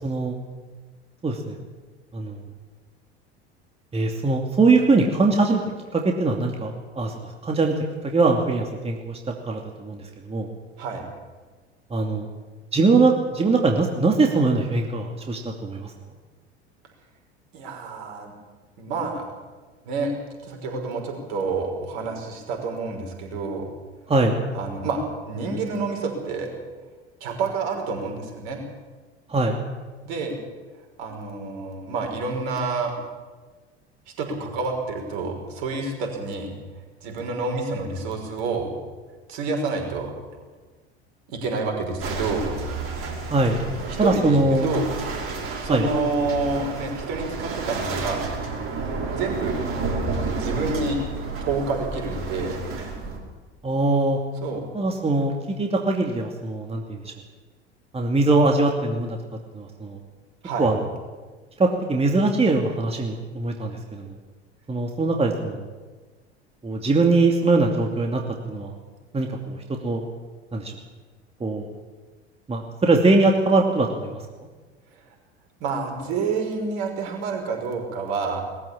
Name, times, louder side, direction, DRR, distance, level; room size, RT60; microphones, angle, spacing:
voice 1, 0.0-0.4 1.2-1.6 2.1-2.4 3.9-5.6 5.9-9.2 9.4-10.5 11.9-12.3 12.7-15.9 24.1-24.4 29.3-29.6 43.3-43.6 44.0-44.6 45.7-45.9 53.6-54.2 54.7-57.1 57.9-59.2 59.5-60.0 60.6-60.8 61.6-64.1 64.7-65.7 66.6-68.2 68.5-68.8 69.1-70.0 70.5-70.7 71.4-71.7 72.5-74.2, right 3 dB, 20° right, 2 dB, 2.6 m, -22 dB
voice 2, 17.5-18.3 18.8-19.2 19.8-20.1 20.4-23.6 24.5-26.5 27.2-28.6 30.0-30.4 31.0-32.9 34.2-36.5 37.0-38.7 39.3-40.1 41.3-42.5 44.0-44.9 45.3-48.3 49.2-49.6 50.4-51.0 51.4-52.6 54.4-54.6 60.4-60.7 75.6-78.4, right 3 dB, 55° right, 2 dB, 6.0 m, -28 dB
sound 1, 42.0-53.2, right 3 dB, 40° right, 6.1 m, -31 dB
21.5 x 14.5 x 8.7 m, 1.3 s
figure-of-eight pair, 75°, 33 cm